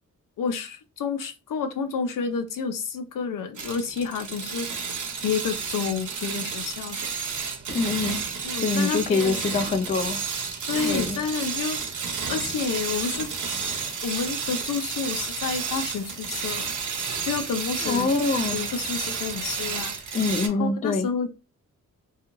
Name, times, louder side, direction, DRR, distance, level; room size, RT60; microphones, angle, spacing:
voice 1, 0.4-4.7 5.2-7.1 8.4-9.4 10.7-12.0 12.3-13.3 14.0-16.7 17.2-18.1 18.5-20.2 20.6-21.3, left 6 dB, 80° left, 0.5 m, -30 dB
sound 1, 3.6-20.5, right 5 dB, 65° right, 0.7 m, -31 dB
voice 2, 7.7-8.2 8.6-10.2 10.8-11.2 17.8-18.6 20.1-21.1, left 4 dB, 25° left, 0.3 m, -25 dB
sound 2, 12.4-19.8, right 3 dB, 40° right, 1.1 m, -43 dB
2.5 x 2.3 x 3.0 m
cardioid pair, 70°, 32 cm